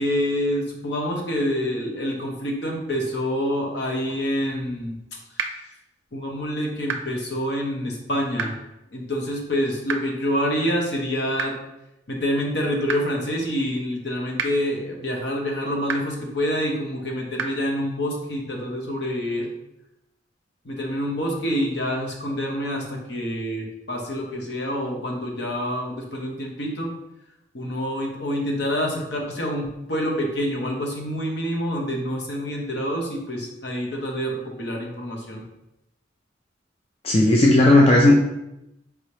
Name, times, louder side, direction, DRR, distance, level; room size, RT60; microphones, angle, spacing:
voice 1, 0.0-5.0 5.4-5.5 6.1-8.6 8.9-11.6 12.1-19.5 20.6-26.9 27.5-35.4, equal, 60° left, -1 dB, 0.8 m, -27 dB
sound 1, 5.4-5.5 6.9-7.0 8.4-8.5 9.9-10.0 11.4-11.5 12.9-13.0 14.4-14.5 15.9-16.0 17.4-17.5, right 6 dB, 80° right, 0.4 m, -26 dB
voice 2, 37.0-38.1, left 1 dB, 30° left, -2 dB, 0.4 m, -14 dB
4.7 x 2.8 x 3.2 m, 0.89 s
head